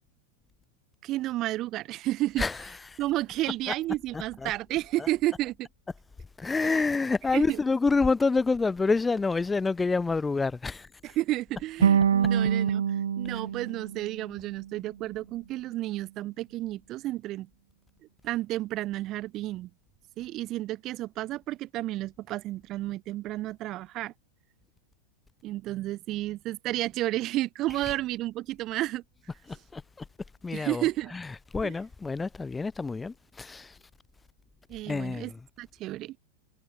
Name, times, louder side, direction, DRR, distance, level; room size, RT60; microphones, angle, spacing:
voice 1, 1.0-2.4 3.0-5.7 6.6-6.9 7.3-7.6 11.0-17.5 18.2-19.7 20.2-24.1 25.4-29.0 30.5-31.1 31.6-31.7 34.7-35.3 35.6-36.2, right 16 dB, 35° right, 1.1 m, -31 dB
voice 2, 4.1-4.5 5.0-5.1 6.4-10.9 29.5-30.0 30.4-30.8 31.1-33.8 34.9-35.4, left 4 dB, 10° left, 0.6 m, -28 dB
sound 1, 11.8-14.9, right 8 dB, 65° right, 0.9 m, -26 dB
figure-of-eight pair, 90°, 0 cm